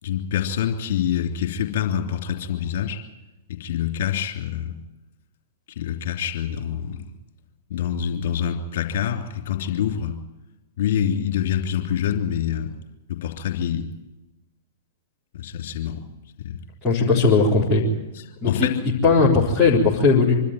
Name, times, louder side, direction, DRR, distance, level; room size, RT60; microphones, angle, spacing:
voice 1, 0.0-3.0 3.5-4.8 5.7-7.0 7.7-10.2 10.8-12.7 13.1-13.9 15.3-16.0 16.4-16.6 18.2-18.7, left 9 dB, 55° left, 3 dB, 3.1 m, -26 dB
voice 2, 16.8-17.8 18.4-18.7 19.0-20.3, left 4 dB, 15° left, -8 dB, 3.9 m, -18 dB
25.5 x 12.5 x 9.2 m, 1.1 s
figure-of-eight pair, 105°, 0 cm